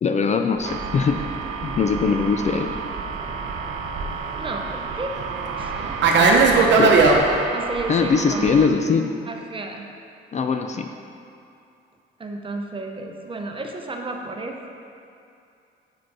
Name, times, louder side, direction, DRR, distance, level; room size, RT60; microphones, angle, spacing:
voice 1, 0.0-1.2 1.6-2.7 6.8-7.0 7.9-9.1 10.3-10.9, left 5 dB, 35° left, 5 dB, 0.4 m, -21 dB
sound 1, 0.6-8.7, right 6 dB, 90° right, 0.4 m, -33 dB
Fixed-wing aircraft airplane, 0.7-7.2, right 4 dB, 65° right, 0.8 m, -21 dB
voice 2, 4.4-5.2 5.6-5.9 7.5-8.7 9.3-9.9 12.2-14.6, right 2 dB, 25° right, 3 dB, 0.7 m, -32 dB
6.1 x 4.9 x 4.7 m, 2.6 s
cardioid pair, 90°, 20 cm